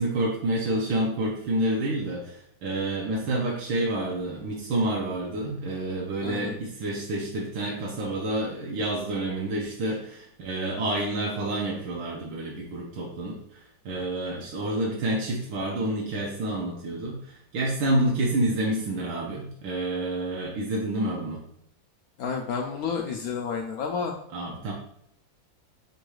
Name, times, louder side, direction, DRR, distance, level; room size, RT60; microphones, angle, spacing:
voice 1, 0.0-21.4 24.3-24.7, right 1 dB, 85° right, -3 dB, 1.6 m, -28 dB
voice 2, 6.2-6.5 22.2-24.1, left 6 dB, 90° left, 1 dB, 0.8 m, -30 dB
6.9 x 2.3 x 3.0 m, 0.72 s
omnidirectional pair, 2.1 m